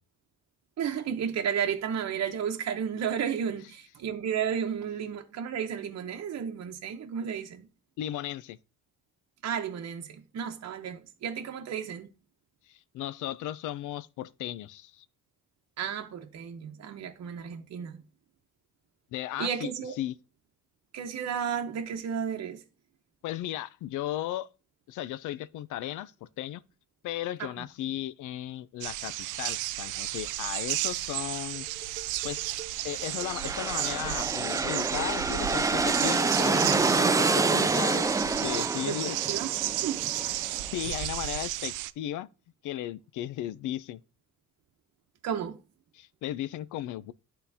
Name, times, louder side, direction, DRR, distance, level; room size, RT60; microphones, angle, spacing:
voice 1, 0.8-7.7 9.4-12.1 15.8-18.0 19.4-20.0 20.9-22.6 27.4-27.5 38.9-39.0 39.3-39.5 39.8-40.0 45.2-45.6, right 8 dB, 60° right, 0.9 m, -33 dB
voice 2, 8.0-8.6 12.7-15.0 19.1-19.7 20.0-20.1 23.2-24.5 24.9-26.6 27.0-29.1 29.4-31.7 32.2-32.4 32.8-39.2 40.6-42.3 42.6-44.0 45.9-47.1, left 13 dB, 85° left, 0.5 m, -35 dB
sound 1, 28.8-41.9, right 15 dB, 85° right, 0.5 m, -33 dB
Dishes pots and pans, 31.5-38.1, right 6 dB, 30° right, 1.3 m, -49 dB
sound 2, 33.1-40.8, right 3 dB, 10° right, 0.3 m, -27 dB
11.5 x 3.8 x 2.7 m
cardioid pair, 90°, 30 cm